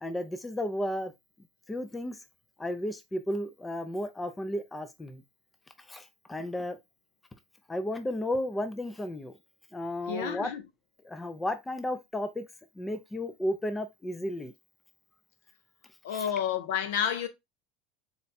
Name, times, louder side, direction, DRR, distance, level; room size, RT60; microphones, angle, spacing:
voice 1, 0.0-1.1 1.7-2.2 2.6-5.2 5.9-6.8 7.7-9.3 9.7-10.5 11.0-12.5 12.8-14.5 16.1-16.3, left 1 dB, 10° left, 0.4 m, -33 dB
voice 2, 10.1-10.6 16.0-17.3, left 8 dB, 85° left, 0.9 m, -30 dB
4.1 x 2.3 x 4.0 m
cardioid pair, 165°, 0 cm